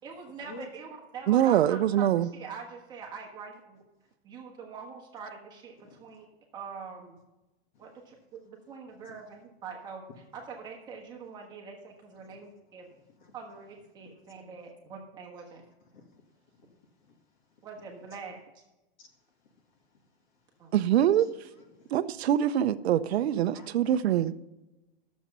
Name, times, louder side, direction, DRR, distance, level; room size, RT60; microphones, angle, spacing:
voice 1, 0.0-3.8 4.2-6.3 6.5-7.2 7.8-10.0 10.3-12.9 13.3-15.6 17.6-18.4 20.6-20.7, right 5 dB, 15° right, 1.4 m, -44 dB
voice 2, 1.3-2.3 20.7-21.3 21.9-24.3, right 11 dB, 80° right, 0.7 m, -24 dB
voice 3, 5.8-6.2 7.7-8.2 9.1-9.2 12.3-12.4 12.9-13.3 14.0-14.4 15.8-16.2 16.5-17.2 19.0-19.1 19.4-20.4 21.2-21.3 21.7-21.9 23.5-23.7, left 2 dB, 45° left, 1.9 m, -53 dB
12.0 x 7.3 x 5.4 m
supercardioid pair, 180°, 31 cm